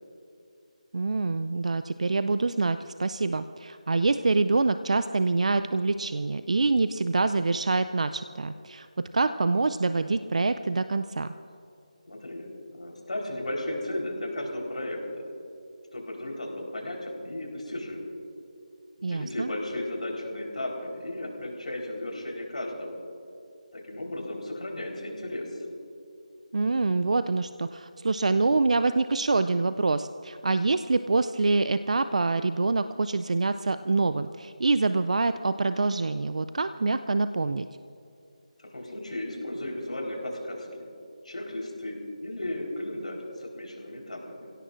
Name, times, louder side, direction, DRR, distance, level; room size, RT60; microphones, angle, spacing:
voice 1, 0.9-11.3 19.0-19.5 26.5-37.7, right 3 dB, 60° right, 11 dB, 0.4 m, -26 dB
voice 2, 12.1-15.3 15.9-18.1 19.0-23.0 23.7-25.7 38.6-40.9 41.2-44.5, left 1 dB, 75° left, 0 dB, 4.0 m, -35 dB
29.0 x 16.5 x 2.5 m, 2.7 s
figure-of-eight pair, 160°, 4 cm